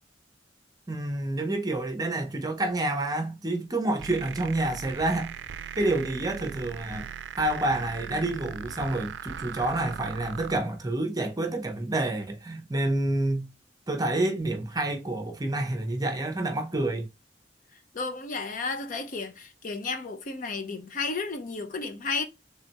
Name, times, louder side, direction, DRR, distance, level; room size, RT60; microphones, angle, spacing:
voice 1, 0.9-5.3 5.8-7.1 7.4-13.5 13.9-17.1, right 2 dB, 20° right, 0.7 m, -28 dB
sound 1, 4.0-10.6, right 8 dB, 80° right, 0.4 m, -39 dB
voice 2, 17.9-22.2, left 4 dB, 45° left, 0.6 m, -33 dB
3.6 x 3.2 x 2.8 m
head